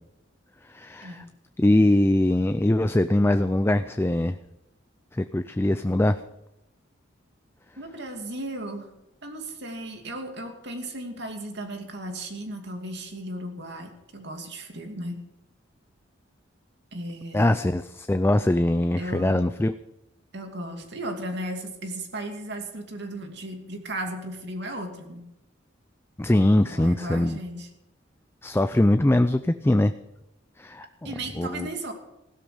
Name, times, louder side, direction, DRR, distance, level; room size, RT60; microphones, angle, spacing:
voice 1, 0.7-1.2 1.6-4.4 5.1-6.2 17.3-19.7 26.2-27.4 28.4-29.9 30.6-30.9 31.4-31.7, left 1 dB, 10° left, 10 dB, 0.4 m, -22 dB
voice 2, 7.8-8.9 9.2-15.2 16.9-17.5 19.0-19.4 20.3-25.3 26.7-27.7 31.0-31.9, right 1 dB, 60° right, 4 dB, 2.6 m, -35 dB
16.5 x 12.5 x 5.1 m, 0.88 s
head